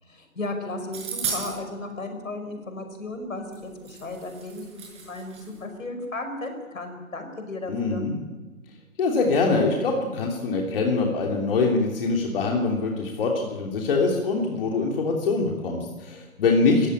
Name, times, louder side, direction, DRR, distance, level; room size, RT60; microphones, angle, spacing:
voice 1, 0.1-8.0, left 2 dB, 65° left, 6 dB, 5.8 m, -35 dB
sound 1, 0.9-1.5 3.5-3.6 3.8-5.6, right 5 dB, 15° right, 6.2 m, -34 dB
voice 2, 7.7-8.1 9.0-16.9, left 3 dB, 40° left, 1 dB, 3.1 m, -24 dB
25.0 x 15.5 x 8.9 m, 1.2 s
figure-of-eight pair, 130°, 42 cm